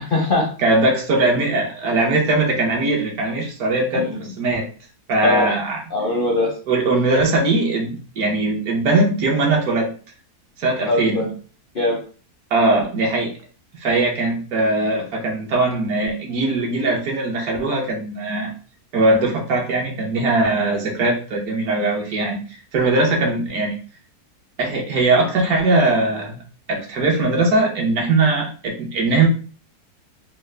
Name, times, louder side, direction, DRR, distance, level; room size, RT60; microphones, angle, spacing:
voice 1, 0.0-0.5 3.9-4.2 5.2-5.5 5.9-6.5 10.8-11.3 11.7-12.0, left 2 dB, 55° left, -1 dB, 0.6 m, -21 dB
voice 2, 0.6-4.7 5.1-5.8 6.7-9.9 10.6-11.3 12.5-13.3 13.8-18.5 18.9-23.8 24.6-26.4 26.7-29.3, right 2 dB, 70° right, 0 dB, 1.4 m, -20 dB
3.7 x 2.1 x 3.2 m, 0.39 s
omnidirectional pair, 1.7 m